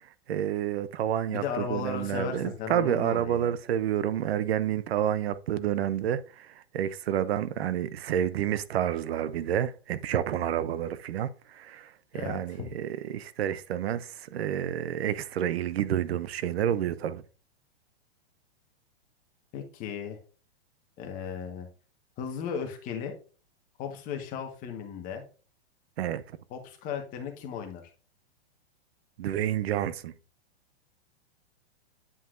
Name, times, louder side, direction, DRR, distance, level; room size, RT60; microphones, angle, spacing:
voice 1, 0.3-6.5 6.7-11.3 11.6-11.9 12.1-17.2 26.0-26.2 29.2-30.1, right 10 dB, 70° right, 0.7 m, -29 dB
voice 2, 1.3-3.6 12.1-12.7 19.5-20.2 21.0-21.7 22.2-23.1 23.8-25.2 26.5-27.9, left 7 dB, 25° left, 1.4 m, -36 dB
9.7 x 5.5 x 2.5 m
hypercardioid pair, 160°, 32 cm